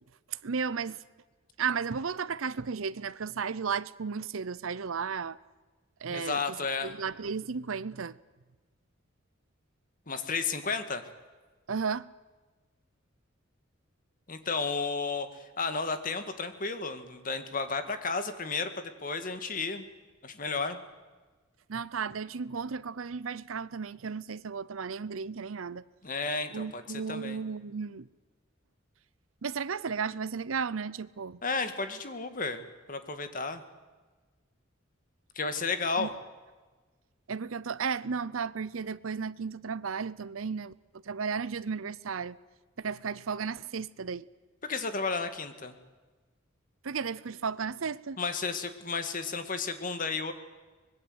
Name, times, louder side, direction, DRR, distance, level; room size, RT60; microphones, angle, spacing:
voice 1, 0.3-1.0 1.6-5.4 6.0-6.6 6.8-8.2 11.7-12.1 21.7-25.8 26.5-28.1 29.4-31.4 36.0-36.1 37.3-40.7 41.0-42.4 42.8-44.2 46.8-48.2, right 5 dB, 90° right, 0.7 m, -34 dB
voice 2, 6.1-6.9 10.1-11.0 14.3-19.9 20.2-20.8 26.0-27.4 31.4-33.6 35.4-36.1 44.6-45.8 48.2-50.3, left 4 dB, 40° left, 1.9 m, -33 dB
24.5 x 20.5 x 8.0 m
head